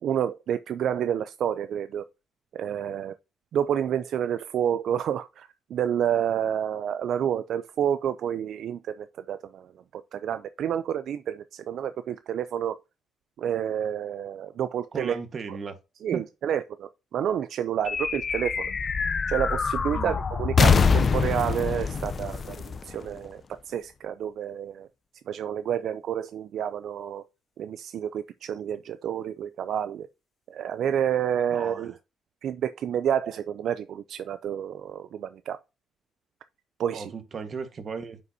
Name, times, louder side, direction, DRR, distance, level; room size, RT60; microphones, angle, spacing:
voice 1, 0.0-2.0 2.5-3.1 3.5-12.8 13.4-15.2 16.0-18.7 19.3-24.9 25.3-27.2 27.6-30.1 30.5-31.9 32.4-35.6 36.8-37.1, right 9 dB, 70° right, 0.4 m, -29 dB
voice 2, 14.9-15.8 16.1-16.2 19.9-20.2 31.5-31.9 36.9-38.2, right 5 dB, 45° right, 1.4 m, -35 dB
sound 1, 17.8-23.5, left 5 dB, 40° left, 0.5 m, -25 dB
9.4 x 5.5 x 2.7 m
cardioid pair, 100°, 0 cm